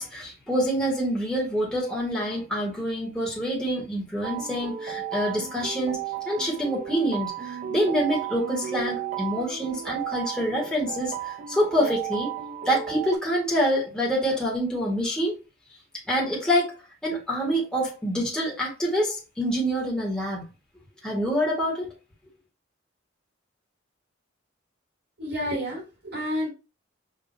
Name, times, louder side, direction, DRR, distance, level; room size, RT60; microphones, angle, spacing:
voice 1, 0.0-6.0 6.2-12.3 12.6-15.4 16.1-16.7 17.0-20.4 21.0-21.9, equal, 5° left, 1.4 m, -26 dB
sound 1, 4.2-13.2, right 10 dB, 40° right, 0.4 m, -34 dB
voice 2, 25.2-26.5, equal, 75° right, 2.2 m, -30 dB
5.6 x 2.6 x 2.6 m
head